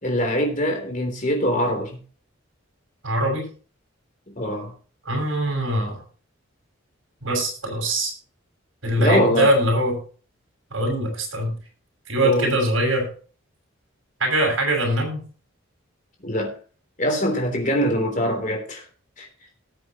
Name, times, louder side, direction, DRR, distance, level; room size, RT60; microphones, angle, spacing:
voice 1, 0.0-2.0 4.3-4.7 9.0-9.5 12.2-12.5 16.2-16.5 17.0-18.8 19.2-19.3, equal, 40° left, 3.4 m, -23 dB
voice 2, 3.0-3.5 5.0-6.0 7.2-8.1 8.8-9.9 10.7-11.5 12.1-13.1 14.2-15.2, right 1 dB, 70° right, 6.4 m, -22 dB
19.0 x 7.7 x 3.0 m
head